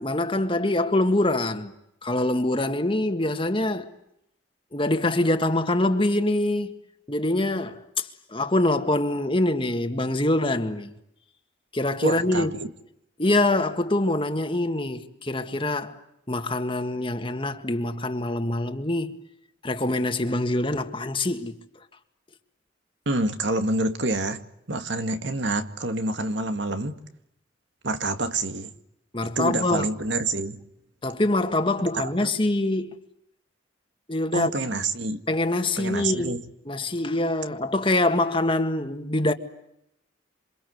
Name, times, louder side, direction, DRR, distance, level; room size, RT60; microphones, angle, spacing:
voice 1, 0.0-1.7 2.0-3.9 4.7-6.7 7.1-10.9 11.7-12.7 13.2-16.0 16.3-19.1 19.6-21.6 29.1-29.9 31.0-33.0 34.1-34.5 35.3-36.4 36.7-39.3, left 2 dB, 25° left, 1.9 m, -24 dB
voice 2, 12.0-12.7 23.1-24.4 24.7-26.9 27.8-28.7 29.2-30.6 31.9-32.1 34.3-35.2 35.8-36.4, right 2 dB, 70° right, 2.1 m, -27 dB
27.5 x 26.5 x 8.1 m
head